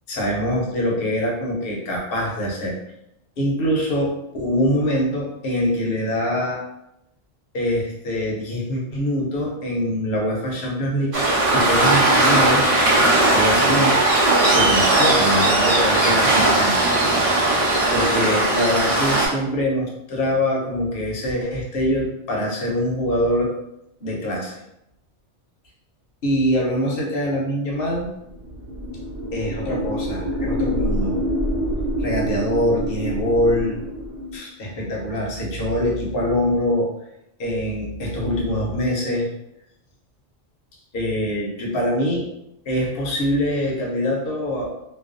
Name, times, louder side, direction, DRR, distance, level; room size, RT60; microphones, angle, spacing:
voice 1, 0.1-2.8 3.4-6.6 7.5-11.2 11.5-12.7 13.3-14.0 14.4-16.9 17.9-23.6 24.0-24.6 26.2-28.1 29.3-31.2 32.0-33.8 34.3-36.9 37.4-39.3 40.9-42.3 42.7-44.7, equal, 60° left, -2 dB, 0.8 m, -24 dB
Waves surf, 11.1-19.3, right 2 dB, 45° right, 0.5 m, -18 dB
sound 1, 28.3-34.4, equal, 90° right, 0.9 m, -26 dB
2.3 x 2.2 x 2.4 m, 0.84 s
omnidirectional pair, 1.2 m